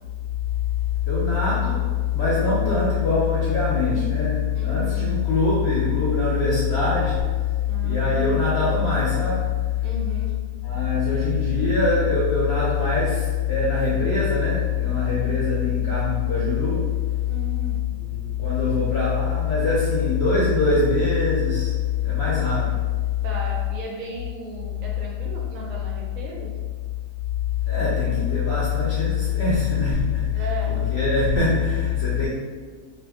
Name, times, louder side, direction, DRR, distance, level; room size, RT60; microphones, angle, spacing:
voice 1, 1.1-7.3 7.8-9.5 10.6-16.9 18.0-22.8 27.7-32.3, left 5 dB, 60° left, -7 dB, 0.7 m, -22 dB
voice 2, 4.5-5.1 7.7-8.4 9.8-10.4 17.3-17.8 23.2-26.5 30.3-30.8, right 3 dB, 70° right, -2 dB, 0.9 m, -35 dB
2.6 x 2.6 x 3.5 m, 1.5 s
omnidirectional pair, 1.7 m